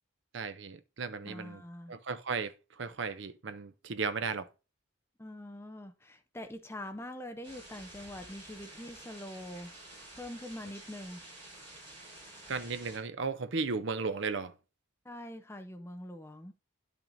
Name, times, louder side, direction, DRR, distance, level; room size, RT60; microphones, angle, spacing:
voice 1, 0.3-1.6 1.9-4.5 12.5-14.5, right 4 dB, 60° right, 0.6 m, -35 dB
voice 2, 1.2-2.0 5.2-9.8 10.2-11.2 15.0-16.5, left 1 dB, 10° left, 0.6 m, -44 dB
sound 1, 7.4-13.0, right 1 dB, 25° right, 4.7 m, -50 dB
10.5 x 5.9 x 2.6 m
head